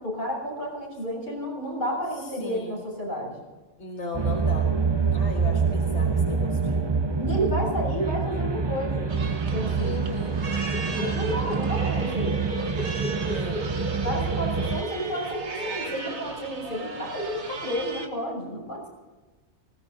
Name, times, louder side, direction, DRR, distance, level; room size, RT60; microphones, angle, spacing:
voice 1, 0.0-3.4 7.2-9.1 9.5-10.1 10.9-12.4 14.0-18.9, equal, 45° left, -2 dB, 7.1 m, -31 dB
voice 2, 2.2-2.8 3.8-4.7 5.1-6.9 9.7-10.4 13.1-13.8, left 3 dB, 85° left, 0 dB, 2.0 m, -37 dB
sound 1, 4.1-14.8, right 5 dB, 30° right, 0.6 m, -26 dB
sound 2, 9.1-18.1, right 3 dB, 80° right, 1.9 m, -37 dB
sound 3, 10.0-16.5, equal, 50° right, 3.7 m, -36 dB
19.5 x 17.5 x 4.1 m, 1.2 s
omnidirectional pair, 1.2 m